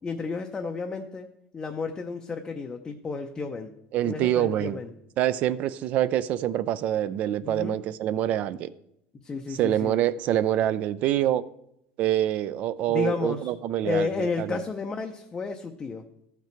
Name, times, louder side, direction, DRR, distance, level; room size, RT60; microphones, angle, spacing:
voice 1, 0.0-1.3 1.5-3.7 4.0-4.9 7.4-7.8 9.2-9.9 12.9-13.5 13.8-16.0, left 4 dB, 15° left, 0.6 m, -32 dB
voice 2, 3.9-4.8 5.2-8.7 9.5-11.4 12.0-14.6, right 12 dB, 40° right, 0.4 m, -26 dB
14.5 x 5.9 x 4.5 m
cardioid pair, 160°, 4 cm